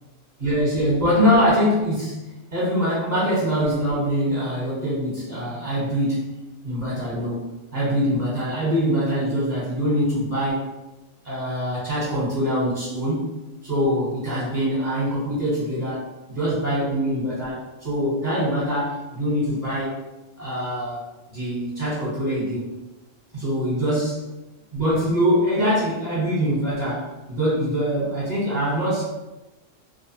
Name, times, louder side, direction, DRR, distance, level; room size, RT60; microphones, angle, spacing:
voice 1, 0.4-6.2 6.6-7.4 7.7-10.7 11.2-13.3 13.6-20.0 20.4-21.0 21.3-22.7 23.3-24.2 24.7-29.0, equal, 35° right, -9 dB, 1.0 m, -23 dB
2.8 x 2.1 x 2.7 m, 1.0 s
omnidirectional pair, 1.3 m